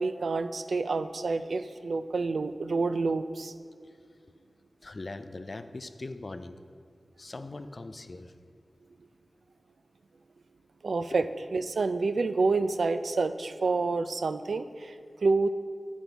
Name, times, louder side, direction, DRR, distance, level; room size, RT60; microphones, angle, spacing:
voice 1, 0.0-3.5 10.8-11.3 11.5-15.0 15.2-15.5, right 3 dB, 85° right, 10 dB, 0.3 m, -28 dB
voice 2, 4.8-6.6 7.2-8.3 11.1-11.2, left 2 dB, 50° left, 9 dB, 0.4 m, -41 dB
9.7 x 6.1 x 4.0 m, 2.1 s
wide cardioid pair, 65°, 0 cm